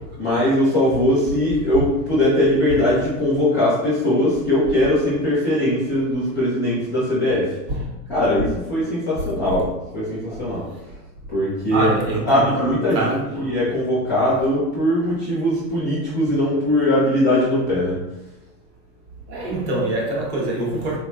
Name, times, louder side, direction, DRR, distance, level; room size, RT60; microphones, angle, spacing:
voice 1, 0.2-7.5 8.1-10.7 11.3-11.9 12.3-18.0, left 1 dB, ahead, 0.3 m, -20 dB
voice 2, 11.7-13.6 19.3-21.0, right 1 dB, 40° right, 1.0 m, -25 dB
4.0 x 2.9 x 2.3 m
supercardioid pair, 160°, 50 cm